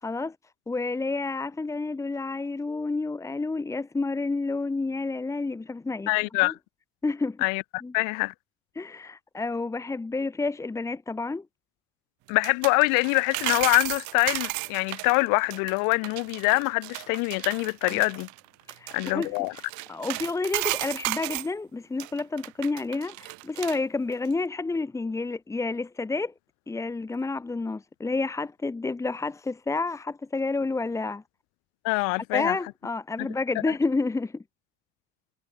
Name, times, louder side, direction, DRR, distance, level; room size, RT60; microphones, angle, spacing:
voice 1, 0.0-0.3 0.7-6.1 6.4-6.5 7.0-7.4 7.8-7.9 8.7-11.4 17.9-18.0 18.7-19.3 19.9-26.3 26.7-31.2 32.3-34.4, left 3 dB, 10° left, 1.8 m, -30 dB
voice 2, 6.1-6.6 7.4-8.3 12.3-18.3 18.9-19.6 31.8-32.6 33.2-33.3 33.7-33.8, left 33 dB, 65° left, 1.3 m, -25 dB
sound 1, 12.3-21.5 22.0-23.8 24.1-24.3, right 27 dB, 60° right, 1.5 m, -34 dB
cardioid pair, 170°, 34 cm